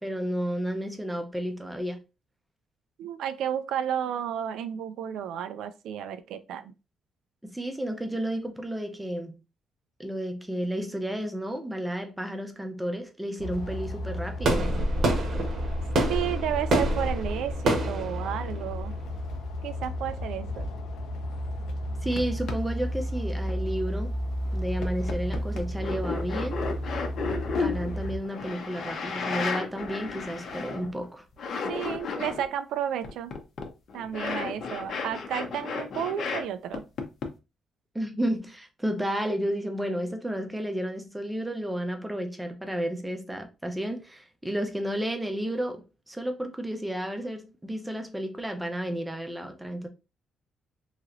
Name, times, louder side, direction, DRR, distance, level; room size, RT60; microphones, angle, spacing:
voice 1, 0.0-2.0 7.4-9.4 10.0-14.7 22.0-24.1 24.5-26.7 27.6-31.2 37.9-49.9, equal, 5° right, 0.5 m, -32 dB
voice 2, 3.0-6.7 16.1-19.0 19.6-20.7 31.7-33.3 33.9-36.8, right 9 dB, 85° right, 0.3 m, -32 dB
sound 1, 13.4-28.2, equal, 90° left, 0.6 m, -33 dB
sound 2, 14.4-19.3, right 1 dB, 55° right, 0.8 m, -27 dB
sound 3, 22.2-22.3 22.5-22.6 23.1-23.5 24.1-24.2 24.8-31.1 31.3-32.5 33.0-36.4 36.7-37.3, left 4 dB, 55° left, 0.7 m, -33 dB
3.1 x 2.8 x 2.4 m
cardioid pair, 150°, 0 cm